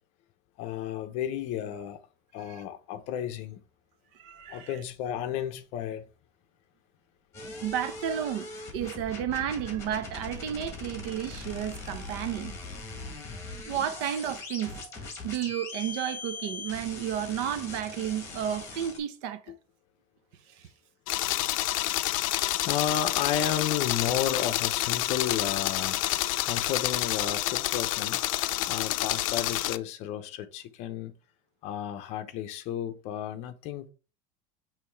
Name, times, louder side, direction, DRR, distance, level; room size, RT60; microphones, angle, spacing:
voice 1, 0.6-2.0 2.3-3.6 4.5-6.1 21.9-22.3 22.6-28.2 28.7-31.1 31.6-33.9, left 10 dB, 40° left, 0.7 m, -33 dB
voice 2, 4.2-4.8 7.6-8.5 8.7-12.5 13.7-14.9 15.2-19.4 21.9-22.0, right 10 dB, 55° right, 0.7 m, -32 dB
sound 1, 7.3-19.0, left 3 dB, 15° left, 1.8 m, -41 dB
sound 2, 21.1-29.8, left 16 dB, 75° left, 0.5 m, -28 dB
6.6 x 3.1 x 4.5 m
cardioid pair, 175°, 17 cm